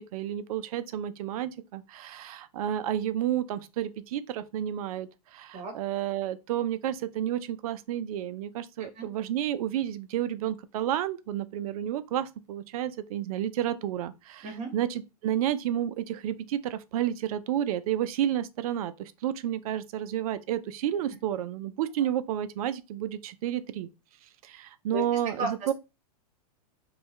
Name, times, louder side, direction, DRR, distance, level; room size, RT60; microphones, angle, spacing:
voice 1, 0.0-14.5 14.7-23.9 24.4-25.7, right 11 dB, 65° right, 0.4 m, -31 dB
voice 2, 25.4-25.7, right 1 dB, 35° right, 1.2 m, -33 dB
2.7 x 2.3 x 3.1 m
hypercardioid pair, 125°, 20 cm